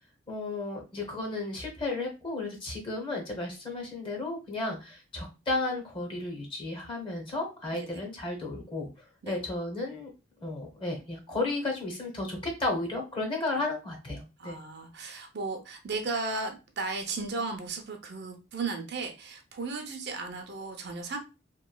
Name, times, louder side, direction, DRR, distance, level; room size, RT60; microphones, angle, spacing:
voice 1, 0.3-10.1 10.4-14.6, left 2 dB, 25° left, 1 dB, 0.8 m, -33 dB
voice 2, 14.4-21.2, right 3 dB, 55° right, 3 dB, 0.5 m, -35 dB
3.0 x 2.2 x 2.2 m, 0.29 s
head